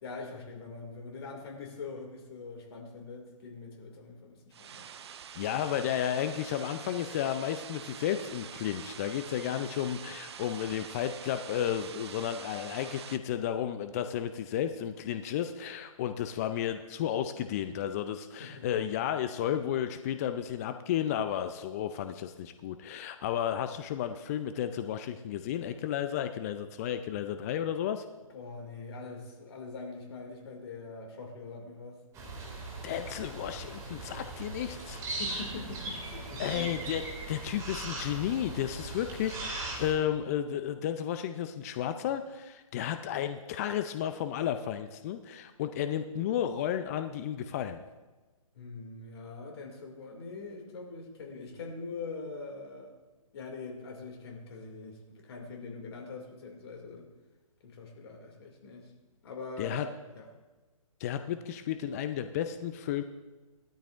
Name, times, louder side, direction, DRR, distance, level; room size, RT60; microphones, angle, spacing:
voice 1, 0.0-4.9 18.3-18.7 28.3-32.0 35.1-36.8 48.5-52.9 53.3-57.1 57.6-58.9 59.2-59.9 60.1-60.3, left 3 dB, 45° left, 1 dB, 2.5 m, -43 dB
sound 1, 4.5-13.2, right 8 dB, 50° right, 0.7 m, -45 dB
voice 2, 5.4-28.0 32.8-35.0 36.4-37.0 37.3-47.8 59.6-59.9 61.0-63.0, left 10 dB, 25° left, 9 dB, 0.5 m, -33 dB
sound 2, 32.1-39.9, right 2 dB, 15° right, 2.5 m, -39 dB
18.5 x 13.0 x 2.6 m, 1.2 s
figure-of-eight pair, 140°, 18 cm